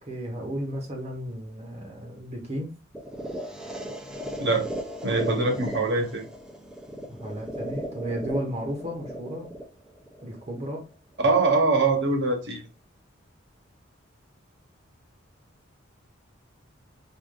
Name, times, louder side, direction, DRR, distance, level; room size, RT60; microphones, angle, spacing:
voice 1, 0.0-2.8 7.1-9.5 10.2-10.9, equal, 35° right, 0.8 m, -34 dB
sound 1, 2.9-10.9, equal, 5° right, 0.4 m, -37 dB
voice 2, 5.0-6.2 11.2-12.7, right 3 dB, 60° right, 1.0 m, -23 dB
4.7 x 2.4 x 2.4 m
head